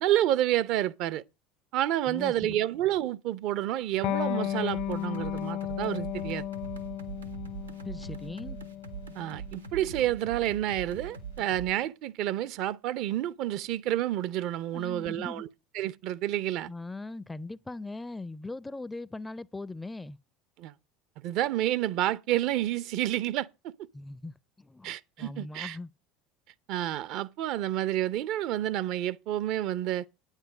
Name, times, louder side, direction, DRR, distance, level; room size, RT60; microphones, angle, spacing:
voice 1, 0.0-1.2 1.7-6.4 9.2-15.5 15.7-16.7 20.6-20.7 21.2-23.5 24.8-25.8 26.7-30.1, right 13 dB, 55° right, 0.6 m, -29 dB
voice 2, 2.1-2.6 7.8-8.6 14.7-15.4 16.7-20.2 23.9-25.9, left 2 dB, 10° left, 0.5 m, -40 dB
Electric guitar, 4.0-11.2, left 12 dB, 60° left, 0.9 m, -35 dB
sound 1, 4.5-11.7, right 6 dB, 90° right, 1.1 m, -42 dB
9.3 x 9.1 x 5.0 m
figure-of-eight pair, 70°, 0 cm